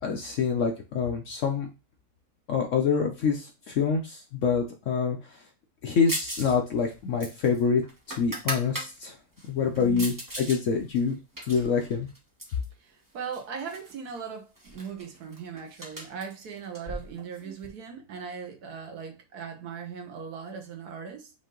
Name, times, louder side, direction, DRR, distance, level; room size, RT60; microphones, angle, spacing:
voice 1, 0.0-1.7 2.5-5.2 5.8-7.8 8.1-9.1 9.5-11.2 11.5-12.1, left 6 dB, 60° left, 0.8 m, -26 dB
sound 1, 6.1-6.5 6.8-8.9 9.4-10.6 10.9-12.6 13.3-13.9 14.2-14.3 14.6-17.7, right 1 dB, 15° right, 1.0 m, -37 dB
voice 2, 9.7-10.1 12.8-21.3, right 6 dB, 65° right, 1.3 m, -39 dB
5.4 x 2.6 x 3.7 m
omnidirectional pair, 1.8 m